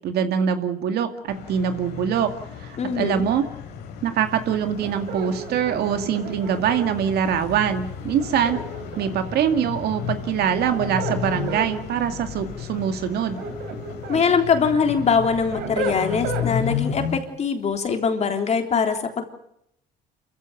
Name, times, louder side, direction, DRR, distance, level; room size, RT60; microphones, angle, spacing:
voice 1, 0.0-2.3 2.6-3.4 4.0-8.6 9.0-13.4, right 8 dB, 70° right, 7 dB, 2.4 m, -23 dB
sound 1, 1.3-17.2, left 8 dB, 85° left, 4.2 m, -34 dB
voice 2, 2.8-3.3 14.1-19.3, left 5 dB, 40° left, 4 dB, 3.5 m, -22 dB
sound 2, 4.8-6.9 8.2-9.3 10.5-11.7 13.1-14.2 14.7-16.5, right 4 dB, 90° right, 4.6 m, -32 dB
27.0 x 15.0 x 9.3 m, 0.76 s
cardioid pair, 110°, 17 cm